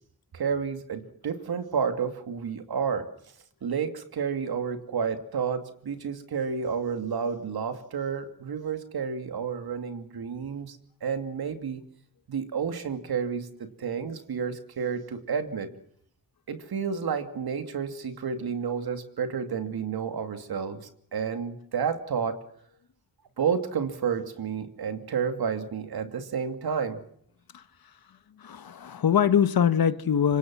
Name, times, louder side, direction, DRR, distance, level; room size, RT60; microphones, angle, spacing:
voice 1, 0.3-3.1 3.6-11.8 12.3-15.7 16.5-20.8 21.1-22.4 23.4-27.0, right 6 dB, 75° right, 2.7 m, -30 dB
voice 2, 28.4-30.4, left 8 dB, 70° left, 1.5 m, -23 dB
26.5 x 24.5 x 6.2 m
cardioid pair, 65°, 37 cm